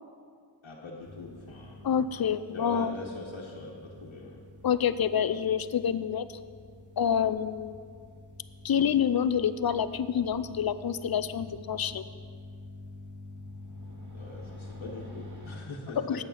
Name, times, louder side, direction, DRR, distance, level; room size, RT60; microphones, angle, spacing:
voice 1, 0.6-1.8 2.5-4.4 14.1-16.2, left 2 dB, 80° left, -4 dB, 1.4 m, -42 dB
sound 1, 1.0-15.6, left 2 dB, 40° right, 2.9 m, -47 dB
voice 2, 1.8-2.9 4.6-6.3 7.0-7.8 8.6-12.0 16.0-16.2, left 8 dB, 50° left, 13 dB, 0.5 m, -27 dB
8.9 x 8.8 x 5.7 m, 2.1 s
wide cardioid pair, 60°, 46 cm